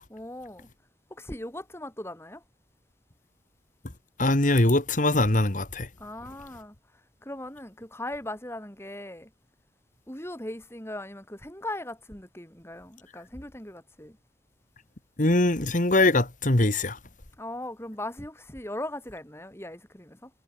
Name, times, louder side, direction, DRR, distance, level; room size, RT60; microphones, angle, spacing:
voice 1, 0.1-0.7 1.1-2.4 6.0-6.7 7.2-9.3 10.1-14.2 17.4-20.3, left 1 dB, 15° left, 7.4 m, -39 dB
voice 2, 4.2-5.9 15.2-17.0, left 2 dB, 45° left, 2.1 m, -22 dB
head